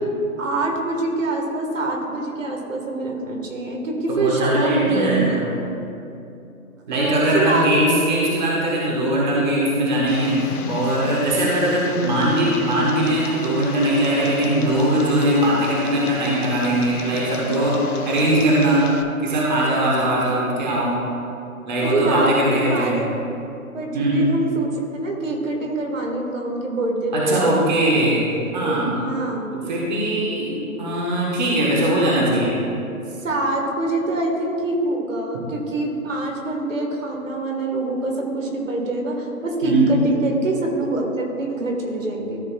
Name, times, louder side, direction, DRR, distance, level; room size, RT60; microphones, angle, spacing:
voice 1, 0.4-5.4 6.9-7.7 21.8-23.1 23.7-24.7 25.0-27.4 28.4-29.5 33.2-42.4, right 2 dB, 60° right, 0 dB, 1.7 m, -25 dB
voice 2, 4.1-5.4 6.9-18.8 19.2-21.0 21.7-23.0 23.9-24.3 27.1-28.3 28.5-29.0 29.5-32.6 39.6-40.0, right 1 dB, 30° right, -5 dB, 1.3 m, -20 dB
Tick, 10.1-19.0, left 5 dB, 80° left, 1.0 m, -35 dB
13.5 x 6.5 x 2.4 m, 2.7 s
hypercardioid pair, 170°, 44 cm